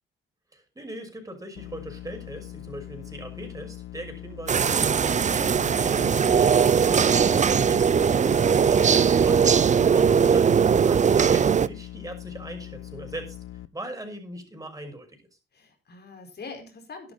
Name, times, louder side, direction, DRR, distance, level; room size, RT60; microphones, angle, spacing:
voice 1, 0.5-7.1 9.9-13.4 13.7-15.2, right 1 dB, 15° right, 4 dB, 6.0 m, -40 dB
sound 1, 1.6-13.7, left 13 dB, 75° left, 0.9 m, -41 dB
sound 2, 4.5-11.7, right 7 dB, 35° right, 0.6 m, -20 dB
voice 2, 15.5-17.1, left 4 dB, 50° left, 5 dB, 4.9 m, -43 dB
12.0 x 11.5 x 4.1 m, 0.29 s
cardioid pair, 70°, 21 cm